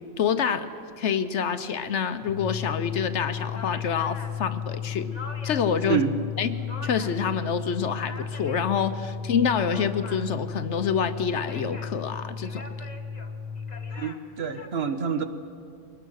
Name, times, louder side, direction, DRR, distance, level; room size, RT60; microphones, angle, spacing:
voice 1, 0.2-0.7 1.0-5.1 5.4-6.0 6.4-6.5 6.8-12.6, left 7 dB, 65° left, 11 dB, 1.1 m, -27 dB
sound 1, 2.2-14.1, left 6 dB, 85° left, 1.8 m, -34 dB
sound 2, 3.5-5.8 6.2-7.3 7.6-8.9 9.3-10.5 11.2-12.0 12.4-14.7, left 2 dB, 35° left, 1.2 m, -44 dB
voice 2, 5.8-6.2 14.0-15.2, right 6 dB, 55° right, 8 dB, 1.2 m, -27 dB
22.0 x 19.0 x 6.4 m, 2.4 s
omnidirectional pair, 1.3 m